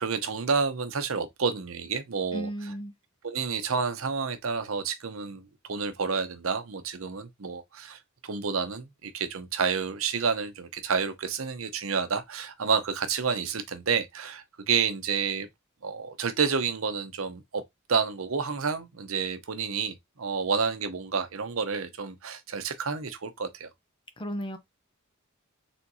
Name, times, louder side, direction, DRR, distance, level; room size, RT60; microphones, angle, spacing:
voice 1, 0.0-2.5 3.2-15.5 15.8-17.6 17.9-23.7, right 5 dB, 75° right, 0.8 m, -29 dB
voice 2, 2.3-2.9 24.2-24.6, equal, 25° left, 0.6 m, -34 dB
4.4 x 3.5 x 2.7 m
head